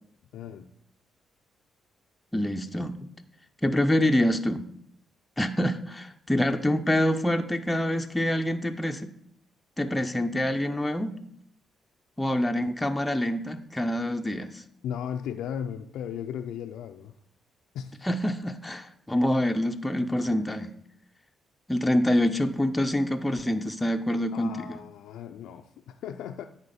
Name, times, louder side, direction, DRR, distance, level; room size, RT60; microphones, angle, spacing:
voice 1, 0.3-0.7 14.8-17.1 17.7-18.0 24.3-26.5, left 9 dB, 85° left, 5 dB, 0.3 m, -36 dB
voice 2, 2.3-3.0 3.6-4.6 5.4-9.1 9.8-11.1 12.2-14.6 18.0-20.7 21.7-24.8, left 1 dB, 10° left, 5 dB, 0.5 m, -26 dB
9.7 x 4.2 x 4.1 m, 0.70 s
cardioid pair, 90°, 0 cm